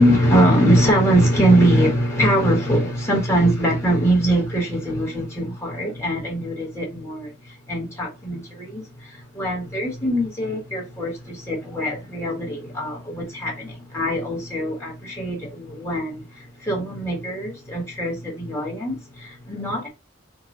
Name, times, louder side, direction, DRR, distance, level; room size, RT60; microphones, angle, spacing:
voice 1, 0.0-7.3 7.7-19.9, right 1 dB, 15° left, 1.2 m, -22 dB
3.8 x 2.2 x 4.1 m
head